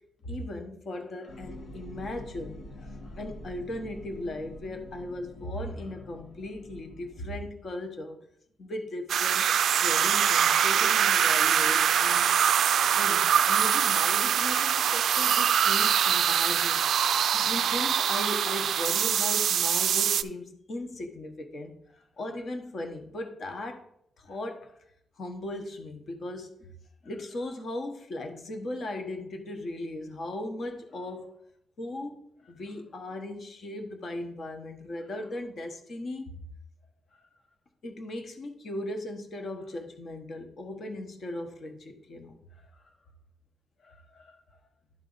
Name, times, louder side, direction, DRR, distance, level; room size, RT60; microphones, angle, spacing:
voice 1, 0.2-8.2 8.6-12.3 12.8-16.8 17.3-23.8 24.2-24.8 25.2-26.7 27.0-31.4 31.8-36.4 37.2-37.3 37.8-42.8 43.8-44.4, left 1 dB, 45° left, 5 dB, 1.1 m, -38 dB
sound 1, 1.3-7.5, left 1 dB, 75° left, 1.3 m, -46 dB
sound 2, 9.1-20.2, right 9 dB, 65° right, 0.3 m, -24 dB
12.0 x 4.1 x 3.9 m, 0.73 s
cardioid pair, 145°, 0 cm